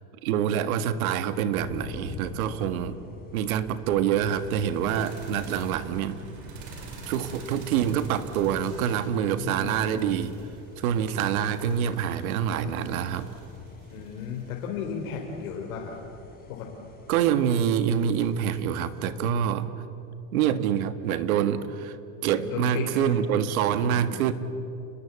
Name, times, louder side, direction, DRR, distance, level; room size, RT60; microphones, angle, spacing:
voice 1, 0.2-3.0 3.3-6.2 7.1-10.3 10.8-13.3 17.1-19.7 20.3-22.0 22.2-24.3, right 9 dB, 90° right, 11 dB, 1.8 m, -26 dB
sound 1, 1.5-19.1, left 4 dB, 20° left, 3.9 m, -47 dB
sound 2, 4.1-17.0 18.6-19.3 21.0-21.1, right 2 dB, 60° right, 6.0 m, -45 dB
voice 2, 9.4-9.9 12.6-13.0 13.9-16.0 16.5-16.7 22.4-23.2 23.8-24.2, left 6 dB, 80° left, 1 dB, 3.9 m, -35 dB
29.0 x 21.0 x 8.6 m, 2.8 s
supercardioid pair, 155°, 41 cm